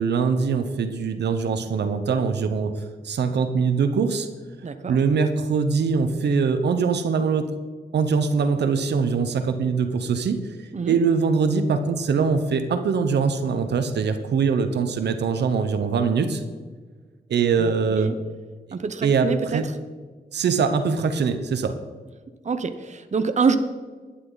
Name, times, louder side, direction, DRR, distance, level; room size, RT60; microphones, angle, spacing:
voice 1, 0.0-4.3 4.9-7.5 7.9-10.4 10.9-16.4 17.3-18.1 19.0-19.7 20.3-21.8, right 5 dB, 85° right, 9 dB, 1.0 m, -22 dB
voice 2, 4.6-5.0 10.7-11.0 17.6-18.1 18.7-19.6 22.4-23.6, right 5 dB, 45° right, 10 dB, 0.9 m, -26 dB
11.5 x 11.5 x 4.0 m, 1.4 s
cardioid pair, 85°, 17 cm